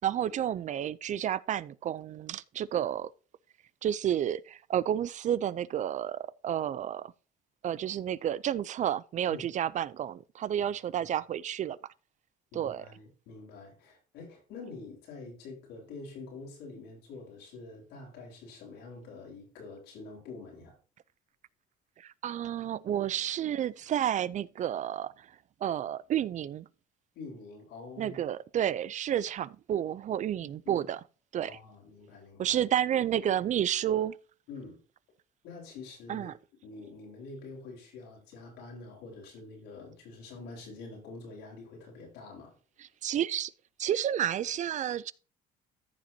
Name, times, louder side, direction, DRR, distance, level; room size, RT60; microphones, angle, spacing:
voice 1, 0.0-3.1 3.8-7.1 7.6-11.8 12.5-12.8 22.0-25.3 25.6-26.7 28.0-31.0 31.3-31.6 32.4-34.2 36.1-36.3 43.0-43.5 43.8-45.1, right 10 dB, 45° right, 0.4 m, -31 dB
voice 2, 12.5-20.7 27.1-28.2 30.4-30.9 31.4-32.6 34.5-34.8 35.4-36.3 36.6-42.6, left 3 dB, 90° left, 4.4 m, -46 dB
14.5 x 5.9 x 2.8 m
cardioid pair, 110°, 17 cm